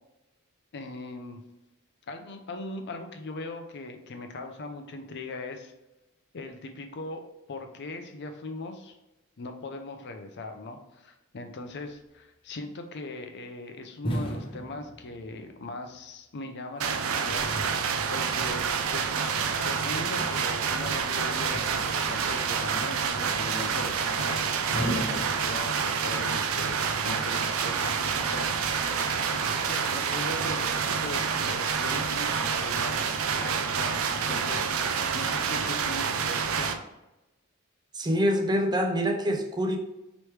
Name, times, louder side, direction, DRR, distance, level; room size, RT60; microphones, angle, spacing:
voice 1, 0.7-1.4 2.1-5.7 6.3-7.2 7.5-9.0 9.4-19.3 19.5-29.0 29.7-33.0 33.4-36.8, left 2 dB, 55° left, 5 dB, 0.6 m, -40 dB
sound 1, 14.0-15.5 16.8-18.9 21.5-22.4 24.7-26.2, equal, 25° left, 0.8 m, -36 dB
sound 2, 16.8-36.7, right 6 dB, 65° right, 0.4 m, -28 dB
voice 2, 37.9-39.8, equal, 20° right, 3 dB, 0.6 m, -25 dB
4.8 x 3.1 x 3.2 m, 0.96 s
head